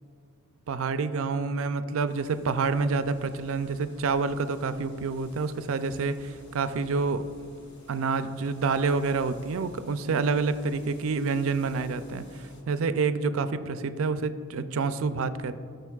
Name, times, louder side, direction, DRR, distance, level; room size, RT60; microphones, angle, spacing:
voice 1, 0.7-7.3 7.9-15.6, right 4 dB, 65° right, 12 dB, 0.4 m, -28 dB
sound 1, 2.1-12.6, left 1 dB, 50° left, 1.1 m, -54 dB
16.5 x 6.5 x 2.4 m, 2.4 s
head